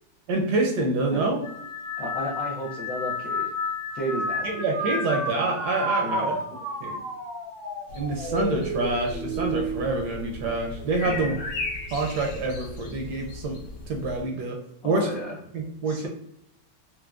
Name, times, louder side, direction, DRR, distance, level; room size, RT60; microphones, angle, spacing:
voice 1, 0.3-1.4 4.4-6.4 6.8-7.0 7.9-11.4 11.9-13.6 13.9-14.6 14.8-15.1 15.5-16.1, right 2 dB, 70° right, 1 dB, 1.0 m, -26 dB
sound 1, 1.4-11.0 11.5-12.1 13.0-13.4, equal, 5° left, 0.5 m, -32 dB
voice 2, 2.0-3.5 3.9-4.6 6.0-6.4 11.0-11.4 14.8-15.4 15.9-16.1, equal, 70° left, -3 dB, 0.8 m, -33 dB
sound 2, 7.9-14.2, left 3 dB, 90° left, 1.5 m, -37 dB
4.4 x 2.1 x 2.3 m, 0.79 s
omnidirectional pair, 2.1 m